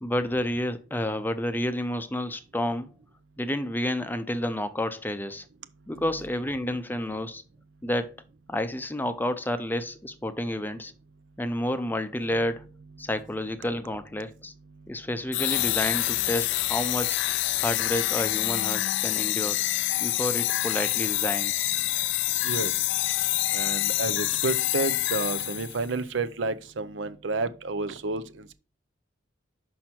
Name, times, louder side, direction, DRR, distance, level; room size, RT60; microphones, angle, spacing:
voice 1, 0.0-2.9 3.4-5.4 5.9-7.4 7.8-8.1 8.5-10.9 11.4-12.7 13.0-14.5 14.9-17.2 17.5-19.6 20.0-21.7, left 1 dB, 10° left, 0.5 m, -30 dB
sound 1, 15.3-25.9, left 17 dB, 65° left, 0.3 m, -27 dB
voice 2, 23.5-28.5, right 3 dB, 75° right, 0.6 m, -30 dB
6.0 x 5.5 x 4.3 m
head